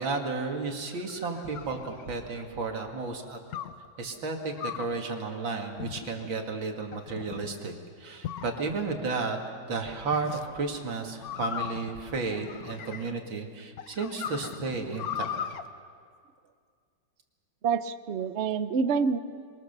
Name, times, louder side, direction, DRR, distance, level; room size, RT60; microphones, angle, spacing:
voice 1, 0.0-3.4 4.0-9.4 9.7-15.3, right 4 dB, 85° right, 3 dB, 2.9 m, -33 dB
sound 1, 0.7-2.5 3.5-3.9 4.6-5.0 5.8-6.3 6.9-7.5 8.2-9.0 10.1-10.4 11.2-13.3 13.8-15.6, left 9 dB, 60° left, 1.2 m, -38 dB
voice 2, 17.6-19.2, right 5 dB, 55° right, 11 dB, 0.8 m, -27 dB
27.0 x 22.5 x 6.8 m, 2.1 s
omnidirectional pair, 2.1 m